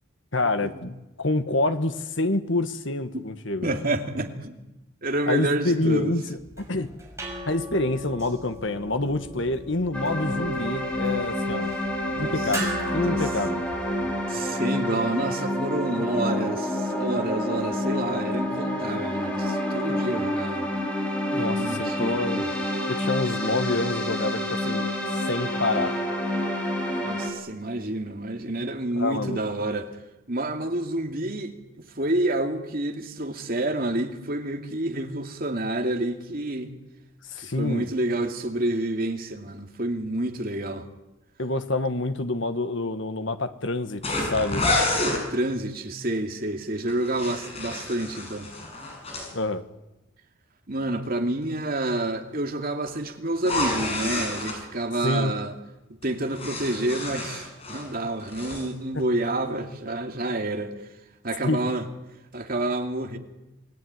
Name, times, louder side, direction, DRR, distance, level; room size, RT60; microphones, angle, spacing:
voice 1, 0.3-3.8 5.3-6.9 7.5-11.7 12.2-13.6 21.3-22.4 22.9-24.9 25.3-25.9 29.0-29.4 37.3-37.9 41.4-44.6 49.3-49.6 55.0-55.3 61.4-61.6, left 2 dB, 60° left, 1.6 m, -27 dB
voice 2, 3.6-4.5 5.0-6.1 12.0-12.5 13.0-13.3 14.3-20.7 21.6-22.5 27.0-29.9 30.3-36.7 37.4-40.8 45.3-48.5 50.7-55.5 56.0-60.7 61.2-61.9 62.3-63.2, right 1 dB, 45° right, 2.6 m, -29 dB
sound 1, 6.4-14.4, right 1 dB, 15° right, 6.5 m, -38 dB
sound 2, 9.9-27.3, left 1 dB, 5° left, 4.7 m, -28 dB
sound 3, 44.0-45.2 46.9-49.3 53.4-54.6 56.0-57.9 58.2-58.7, left 2 dB, 30° left, 7.3 m, -29 dB
28.0 x 19.0 x 9.7 m
head